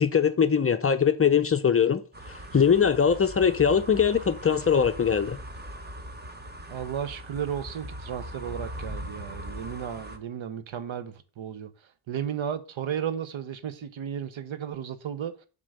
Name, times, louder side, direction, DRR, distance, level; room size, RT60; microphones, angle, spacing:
voice 1, 0.0-2.0 2.3-5.4, left 7 dB, 30° left, 0.5 m, -22 dB
sound 1, 2.1-10.2, equal, 20° right, 0.9 m, -40 dB
voice 2, 6.7-11.7 12.1-15.3, right 9 dB, 70° right, 0.9 m, -34 dB
7.6 x 3.8 x 6.4 m
wide cardioid pair, 115°, 49 cm